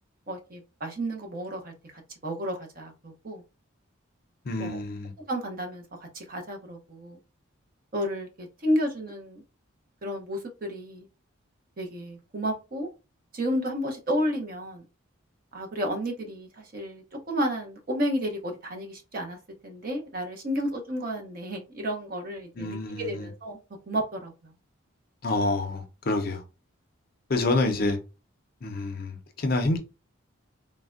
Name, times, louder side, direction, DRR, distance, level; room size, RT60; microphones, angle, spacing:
voice 1, 0.3-3.4 4.6-4.8 5.2-5.8 6.1-7.2 7.9-9.4 10.0-11.1 11.8-12.9 13.3-14.8 15.5-19.4 19.6-23.6 23.9-24.5, equal, 45° right, 0.7 m, -32 dB
voice 2, 4.4-5.1 22.6-23.3 25.2-26.4 27.3-28.0 28.6-29.8, left 2 dB, 45° left, 0.5 m, -27 dB
3.2 x 2.1 x 2.4 m
head